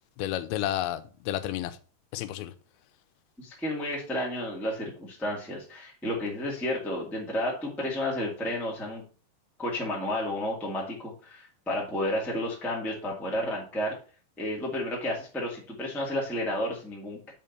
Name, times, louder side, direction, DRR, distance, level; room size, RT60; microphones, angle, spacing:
voice 1, 0.2-1.8 2.1-2.5, left 12 dB, 90° left, 2.5 m, -31 dB
voice 2, 3.4-9.0 9.6-13.9 14.4-17.3, left 1 dB, ahead, 0.7 m, -31 dB
5.5 x 5.0 x 5.3 m
omnidirectional pair, 4.3 m